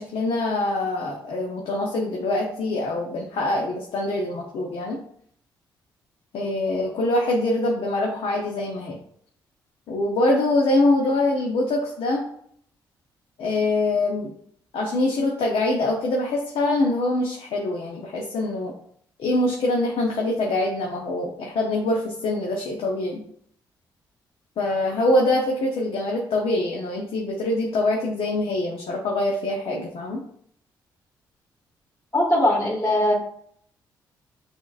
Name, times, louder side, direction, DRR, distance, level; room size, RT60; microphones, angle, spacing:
voice 1, 0.0-5.0 6.3-9.0 9.9-12.2 13.4-14.3 14.7-18.7 19.2-23.2 24.6-30.2, left 2 dB, 60° left, 0 dB, 0.8 m, -24 dB
voice 2, 32.1-33.1, left 1 dB, 25° left, -6 dB, 1.6 m, -20 dB
6.1 x 3.5 x 2.4 m, 0.65 s
hypercardioid pair, 45°, 11 cm